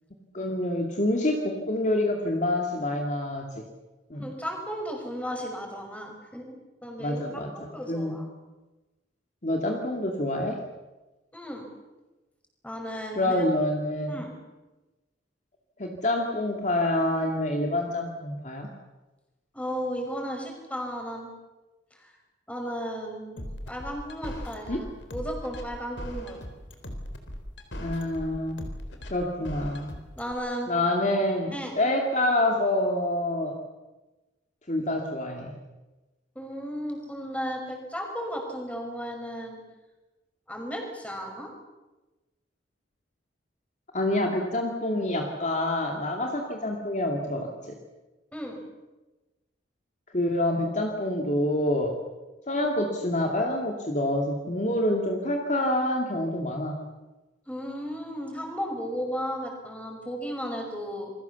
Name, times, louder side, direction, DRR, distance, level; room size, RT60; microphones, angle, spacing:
voice 1, 0.3-3.6 4.1-4.2 7.0-8.2 9.4-10.6 13.2-14.2 15.8-18.7 24.7-24.8 27.8-28.6 29.1-29.9 30.7-33.6 34.7-35.5 43.9-47.7 50.1-52.0 52.5-56.8, left 1 dB, 40° left, 1 dB, 2.4 m, -27 dB
voice 2, 4.1-6.6 6.8-8.3 11.3-11.7 12.6-13.5 14.1-14.3 19.5-21.3 21.9-22.1 22.5-26.4 30.2-30.7 31.5-31.8 36.4-39.6 40.5-41.5 48.3-48.6 57.5-61.1, equal, 5° left, 2 dB, 5.6 m, -35 dB
sound 1, 23.4-30.3, equal, 75° left, 4.0 m, -38 dB
28.5 x 22.5 x 7.1 m, 1.1 s
head